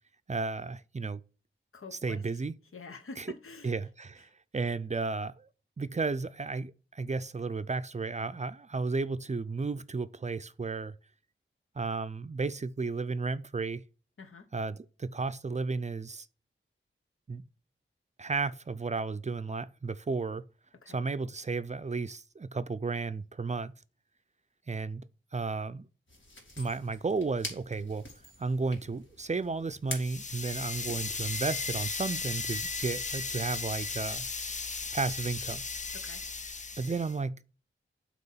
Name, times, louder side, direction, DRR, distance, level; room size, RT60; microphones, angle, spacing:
voice 1, 0.3-1.2 1.9-2.5 3.2-3.3 3.6-5.5 5.8-10.9 11.8-13.8 14.5-16.3 17.3-17.4 18.2-20.5 20.9-23.7 24.7-25.9 26.6-28.1 28.4-34.3 34.9-35.6 36.8-37.4, right 4 dB, 35° right, 0.4 m, -33 dB
voice 2, 1.7-2.2 2.7-3.7 14.2-14.5 20.8-21.0 36.0-36.2, left 3 dB, 80° left, 1.0 m, -46 dB
sound 1, 26.1-31.1, left 2 dB, 65° left, 2.3 m, -45 dB
sound 2, 29.9-37.1, left 4 dB, 35° left, 0.5 m, -36 dB
7.8 x 3.0 x 5.5 m
wide cardioid pair, 60°, 21 cm